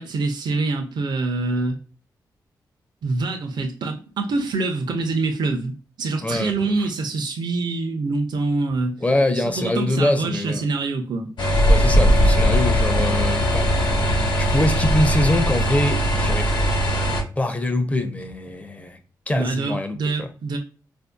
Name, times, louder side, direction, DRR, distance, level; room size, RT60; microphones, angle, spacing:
voice 1, 0.0-1.8 3.0-5.7 6.0-8.9 9.4-11.3 19.3-20.6, right 3 dB, 70° right, 0.5 m, -25 dB
voice 2, 6.2-6.8 9.0-10.7 11.7-14.0 14.4-16.5 17.4-19.0 19.3-20.3, left 1 dB, 20° left, 0.6 m, -24 dB
sound 1, 11.4-17.2, equal, 80° left, 1.0 m, -19 dB
4.2 x 2.6 x 2.2 m
wide cardioid pair, 115°, 8 cm